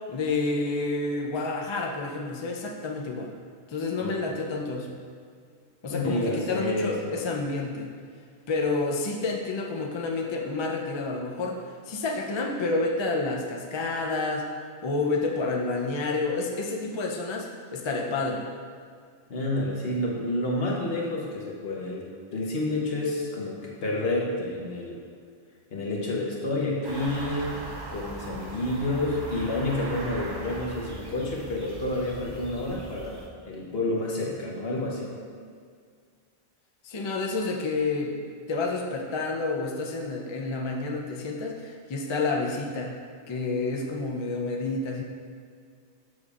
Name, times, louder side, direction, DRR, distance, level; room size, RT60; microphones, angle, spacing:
voice 1, 0.1-3.3 3.7-5.0 5.8-8.0 8.5-14.5 14.8-18.4 36.8-38.2 38.5-42.9 43.3-45.0, left 3 dB, 40° left, 0 dB, 0.4 m, -29 dB
voice 2, 5.9-7.2 19.3-25.0 25.7-27.6 27.9-35.1, left 2 dB, 60° left, -2 dB, 1.2 m, -29 dB
sound 1, 26.8-33.3, right 2 dB, 35° right, 0.4 m, -39 dB
6.8 x 6.1 x 2.4 m, 2.1 s
omnidirectional pair, 1.1 m